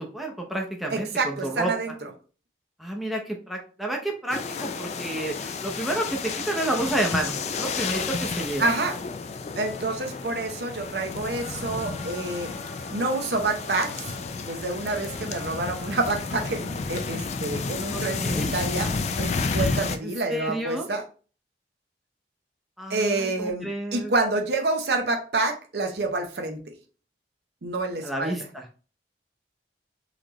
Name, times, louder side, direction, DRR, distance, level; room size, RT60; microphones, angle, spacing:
voice 1, 0.0-1.7 2.8-8.7 17.9-18.6 19.5-20.9 22.8-24.1 28.0-28.6, right 1 dB, ahead, 0 dB, 0.6 m, -30 dB
voice 2, 0.9-2.1 8.6-9.0 9.6-12.5 12.9-14.0 14.5-18.9 19.2-21.0 22.9-26.6 27.6-28.3, right 2 dB, 65° right, 4 dB, 0.7 m, -28 dB
sound 1, 4.3-20.0, left 4 dB, 40° left, 0.3 m, -31 dB
sound 2, 10.5-17.1, left 1 dB, 65° left, 1.1 m, -46 dB
4.0 x 3.2 x 3.0 m, 0.37 s
head